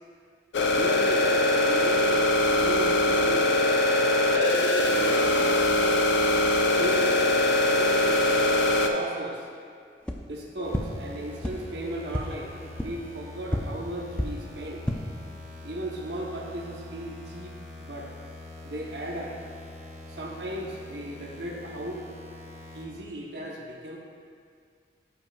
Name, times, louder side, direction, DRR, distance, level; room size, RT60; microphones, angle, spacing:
sound 1, 0.5-8.9, left 1 dB, 85° left, 0.6 m, -22 dB
voice 1, 0.7-6.2 6.8-9.4 10.3-14.8 15.6-18.1 18.6-19.3 20.2-22.0 22.7-24.0, right 1 dB, 75° right, -2 dB, 0.9 m, -36 dB
sound 2, 10.0-10.1 10.7-10.8 11.4-11.5 12.1-12.2 12.8-12.9 13.5-13.6 14.1-14.2 14.7-14.9, left 1 dB, 5° left, 0.4 m, -28 dB
sound 3, 10.6-22.9, left 2 dB, 35° right, 1.2 m, -44 dB
13.0 x 5.6 x 2.3 m, 2.1 s
head